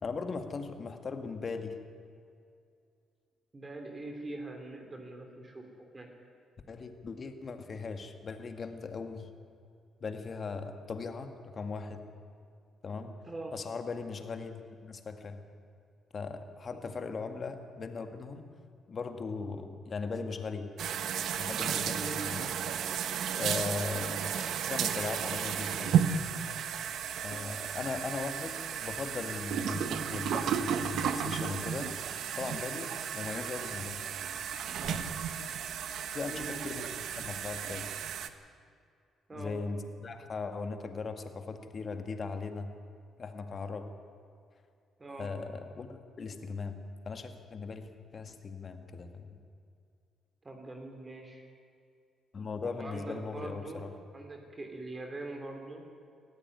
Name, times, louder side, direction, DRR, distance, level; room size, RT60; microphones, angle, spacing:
voice 1, 0.0-1.8 6.7-9.3 10.0-12.0 12.8-13.1 13.5-15.4 16.1-18.5 18.9-20.7 21.4-22.5 23.4-26.0 27.2-31.9 32.4-34.1 34.8-35.2 36.1-37.9 39.3-42.7 43.2-43.9 45.2-46.8 47.1-49.4 52.3-53.9, left 4 dB, 45° left, 6 dB, 1.9 m, -39 dB
voice 2, 3.5-5.6 5.9-6.1 13.2-13.6 16.7-16.8 21.7-22.4 23.9-24.1 36.3-36.6 39.3-39.6 45.0-45.3 50.4-51.4 52.6-53.9 54.1-55.8, right 2 dB, 25° right, 3 dB, 3.1 m, -43 dB
sound 1, 20.8-38.3, right 8 dB, 75° right, 1.1 m, -33 dB
19.0 x 14.0 x 9.7 m, 2.4 s
cardioid pair, 90°, 0 cm